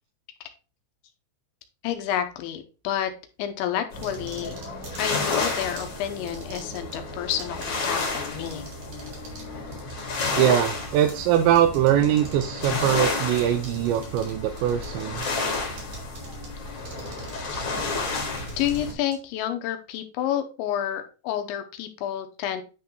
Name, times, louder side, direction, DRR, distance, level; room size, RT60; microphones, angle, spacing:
voice 1, 1.8-3.1 3.4-4.5 5.0-8.7 17.5-17.7 18.6-22.6, left 10 dB, 90° left, 7 dB, 3.3 m, -29 dB
sound 1, 3.9-18.9, left 3 dB, 45° left, 2.3 m, -31 dB
sound 2, 4.0-5.8 6.3-7.0 7.3-7.7 8.0-8.1 8.5-9.5 9.7-12.4 13.0-13.1 13.6-14.3 14.6-15.3 15.5-16.5 16.8-19.2, right 4 dB, 50° right, 3.8 m, -43 dB
voice 2, 10.3-15.3, right 11 dB, 85° right, 5 dB, 2.9 m, -22 dB
9.6 x 3.9 x 4.4 m, 0.33 s
omnidirectional pair, 5.1 m